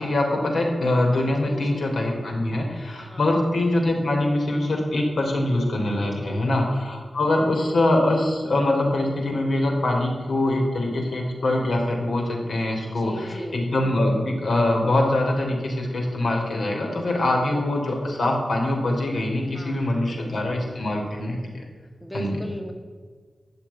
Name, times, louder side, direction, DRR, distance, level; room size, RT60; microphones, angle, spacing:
voice 1, 0.0-21.6 22.1-22.4, left 1 dB, 70° left, 0 dB, 3.2 m, -23 dB
voice 2, 1.4-1.9 3.1-3.3 6.2-6.5 12.9-13.6 19.5-20.4 22.0-22.7, equal, 5° left, 3 dB, 1.2 m, -37 dB
13.0 x 6.7 x 9.6 m, 1.5 s
wide cardioid pair, 130°, 0 cm